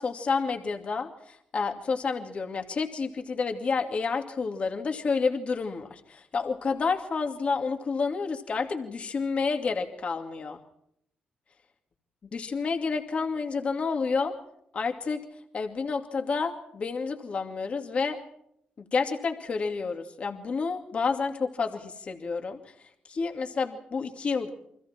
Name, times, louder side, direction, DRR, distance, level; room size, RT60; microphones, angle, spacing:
voice 1, 0.0-10.6 12.3-14.3 14.7-15.2 15.5-18.2 18.9-22.6 23.1-24.5, left 4 dB, 40° left, 5 dB, 2.4 m, -29 dB
29.5 x 25.0 x 4.5 m, 0.72 s
wide cardioid pair, 145°, 3 cm